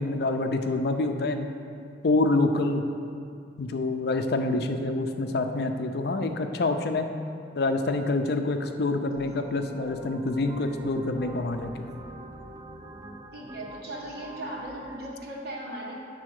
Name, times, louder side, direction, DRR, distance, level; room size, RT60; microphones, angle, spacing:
voice 1, 0.0-1.5 2.0-2.8 3.6-7.1 7.5-11.9, left 2 dB, 60° left, 6 dB, 0.5 m, -26 dB
sound 1, 9.1-15.1, right 1 dB, 20° right, 0.5 m, -43 dB
voice 2, 13.3-16.0, right 1 dB, 60° right, -4 dB, 1.5 m, -38 dB
8.6 x 4.1 x 6.5 m, 2.4 s
head